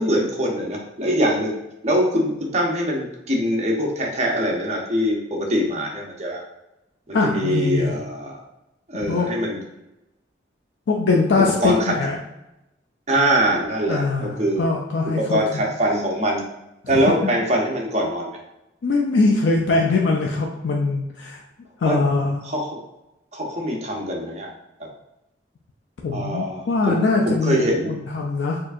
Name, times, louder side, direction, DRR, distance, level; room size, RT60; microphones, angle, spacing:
voice 1, 0.0-1.5 1.8-6.4 7.1-8.4 8.9-9.6 11.6-11.9 13.1-14.6 15.0-16.4 16.9-18.4 21.8-22.0 22.4-22.8 23.3-24.5 26.1-27.0 27.3-28.0, equal, 40° right, -1 dB, 0.7 m, -23 dB
voice 2, 7.1-7.9 9.1-9.3 10.9-12.2 13.9-15.4 16.8-17.3 18.8-21.4 21.8-22.4 26.0-28.6, left 3 dB, 90° left, -1 dB, 0.4 m, -22 dB
4.4 x 2.5 x 2.5 m, 0.92 s
head